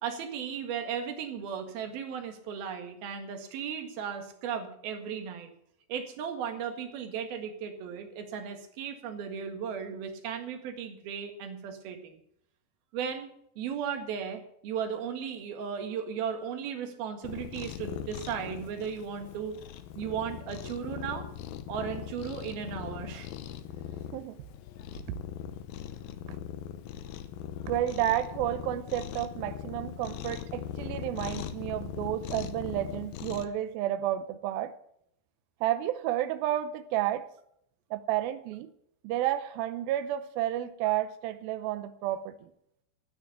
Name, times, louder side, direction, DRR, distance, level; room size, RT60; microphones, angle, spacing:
voice 1, 0.0-5.5 5.9-12.2 12.9-13.3 13.6-19.6 19.9-21.3 21.7-23.3, right 7 dB, 65° right, 5 dB, 3.5 m, -36 dB
Cat, 17.2-33.5, left 10 dB, 75° left, 2.3 m, -40 dB
voice 2, 24.1-24.4 26.3-26.4 27.7-34.7 35.6-37.3 37.9-38.7 39.0-42.3, right 13 dB, 85° right, 11 dB, 2.2 m, -31 dB
14.0 x 9.5 x 7.1 m, 0.73 s
omnidirectional pair, 5.0 m